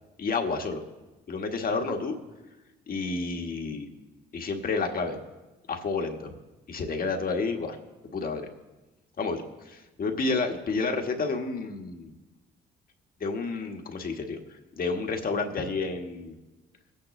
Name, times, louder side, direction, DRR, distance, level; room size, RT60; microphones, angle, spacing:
voice 1, 0.2-0.8 1.3-2.2 2.9-3.9 4.3-5.2 5.7-6.3 6.7-7.8 8.1-8.4 9.2-12.1 13.2-16.3, left 4 dB, 45° left, 4 dB, 1.6 m, -30 dB
21.5 x 9.3 x 3.2 m, 1.1 s
cardioid pair, 90°, 20 cm